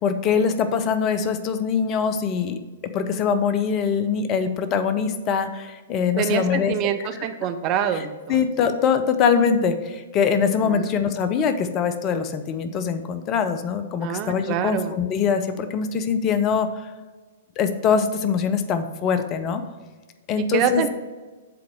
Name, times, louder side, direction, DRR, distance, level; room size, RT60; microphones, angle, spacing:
voice 1, 0.0-2.6 2.9-7.1 7.9-16.9 17.6-19.6 20.3-20.8, left 6 dB, 30° left, 9 dB, 0.5 m, -23 dB
voice 2, 6.2-8.4 10.7-11.0 14.0-14.9 20.5-20.9, right 9 dB, 35° right, 9 dB, 0.5 m, -25 dB
7.8 x 4.1 x 4.7 m, 1.3 s
figure-of-eight pair, 110°, 0 cm